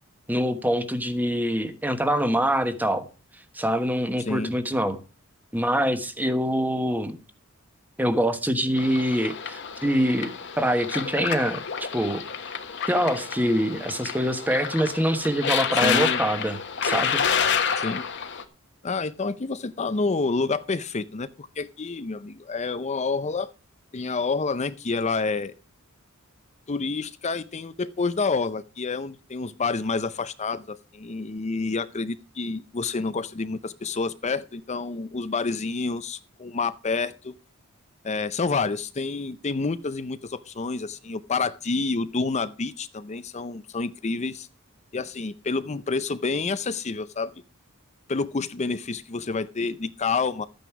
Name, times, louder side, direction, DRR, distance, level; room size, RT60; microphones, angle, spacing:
voice 1, 0.3-3.0 3.5-5.0 5.5-7.2 8.0-12.2 12.9-17.2, equal, 10° right, 1.2 m, -25 dB
sound 1, 8.8-18.4, left 7 dB, 60° left, 1.4 m, -29 dB
voice 2, 15.8-16.2 17.8-18.0 18.8-23.5 23.9-25.5 26.7-37.3 38.0-44.5 44.9-47.3 48.1-50.4, left 4 dB, 30° left, 0.6 m, -28 dB
13.0 x 9.2 x 4.8 m
head